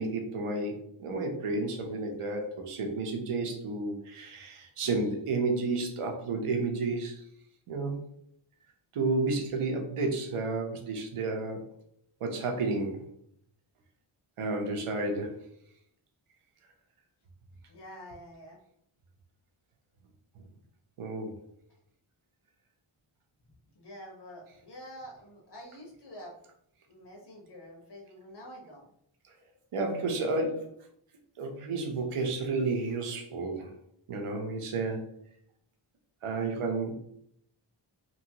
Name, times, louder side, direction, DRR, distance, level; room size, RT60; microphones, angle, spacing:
voice 1, 0.0-7.2 7.7-8.0 8.9-11.6 12.2-13.0 14.4-15.4 21.0-21.3 29.7-30.7 31.4-33.7 34.1-35.2 36.2-36.9, right 3 dB, 85° right, 3 dB, 0.8 m, -31 dB
voice 2, 17.7-18.6 23.7-26.3 26.9-28.8, equal, 55° left, -2 dB, 1.2 m, -47 dB
3.0 x 2.7 x 2.8 m, 0.71 s
wide cardioid pair, 85°, 50 cm